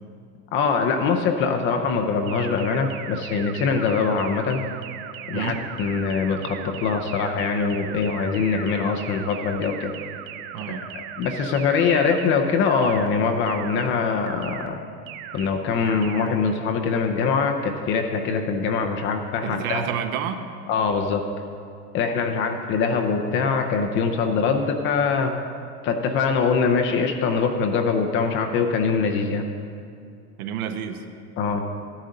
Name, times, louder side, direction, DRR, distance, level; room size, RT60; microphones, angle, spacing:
voice 1, 0.5-4.6 5.3-9.9 10.7-10.8 11.2-14.8 15.3-19.8 20.7-21.2 21.9-25.3 25.8-29.4 31.4-31.6, left 5 dB, 25° left, 4 dB, 0.6 m, -23 dB
sound 1, 2.3-12.3 12.7-13.1 13.5-13.9 14.3-14.7 15.1-15.5 15.9-16.3, right 11 dB, 35° right, 0.4 m, -38 dB
voice 2, 5.3-5.7 10.5-10.8 19.4-20.5 30.4-31.0, right 8 dB, 60° right, 7 dB, 1.0 m, -29 dB
13.0 x 10.5 x 3.9 m, 2.4 s
supercardioid pair, 135°, 48 cm